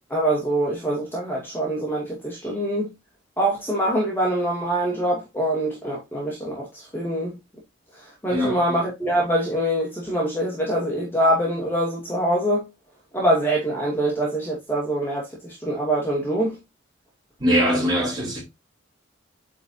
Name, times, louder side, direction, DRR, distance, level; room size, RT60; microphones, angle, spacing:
voice 1, 0.1-2.9 3.4-6.7 6.9-7.4 8.2-12.6 13.1-16.6, right 1 dB, 10° left, 2.4 m, -24 dB
voice 2, 17.4-18.4, equal, 20° right, 5.0 m, -21 dB
8.9 x 4.9 x 2.8 m
head